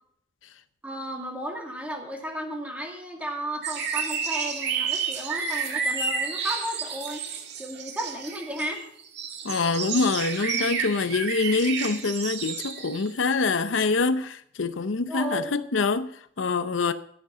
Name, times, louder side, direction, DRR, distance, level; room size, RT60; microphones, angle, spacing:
voice 1, 0.8-8.8 15.1-15.6, right 1 dB, 10° right, 2.3 m, -34 dB
sound 1, 3.6-13.1 13.7-13.8, right 5 dB, 65° right, 1.8 m, -30 dB
voice 2, 9.4-16.9, left 4 dB, 90° left, 0.7 m, -25 dB
11.0 x 10.5 x 5.6 m
head